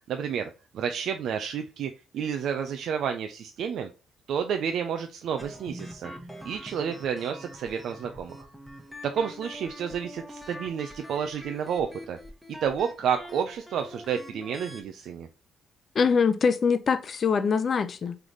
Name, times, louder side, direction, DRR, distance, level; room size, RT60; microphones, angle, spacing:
voice 1, 0.1-3.9 4.3-6.1 6.4-8.5 9.0-12.2 12.5-15.3, right 7 dB, 70° right, 0.4 m, -30 dB
sound 1, 5.4-14.8, equal, ahead, 1.0 m, -44 dB
voice 2, 15.9-18.2, left 5 dB, 45° left, 0.5 m, -23 dB
3.9 x 3.3 x 3.1 m
cardioid pair, 90°, 0 cm